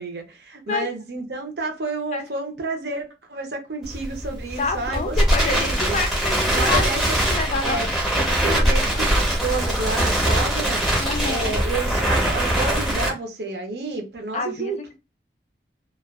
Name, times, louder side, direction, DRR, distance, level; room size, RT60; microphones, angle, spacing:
voice 1, 0.0-6.0 6.5-7.2 7.6-7.9 8.2-10.9 11.2-14.8, right 3 dB, 70° right, 0.7 m, -30 dB
Crackle, 3.8-13.1, right 1 dB, ahead, 0.7 m, -22 dB
voice 2, 4.6-7.8 8.2-8.6 11.0-11.6 14.3-15.0, left 4 dB, 40° left, 0.3 m, -28 dB
2.3 x 2.3 x 2.3 m
head